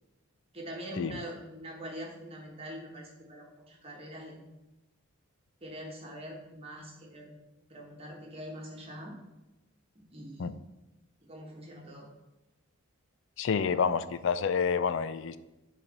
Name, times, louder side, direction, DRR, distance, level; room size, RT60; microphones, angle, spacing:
voice 1, 0.5-4.4 5.6-7.4 7.7-9.1 9.9-10.5 11.2-12.1, equal, 25° right, -1 dB, 1.2 m, -43 dB
voice 2, 13.4-15.4, left 6 dB, 55° left, 14 dB, 0.3 m, -28 dB
7.4 x 3.2 x 5.3 m, 0.99 s
head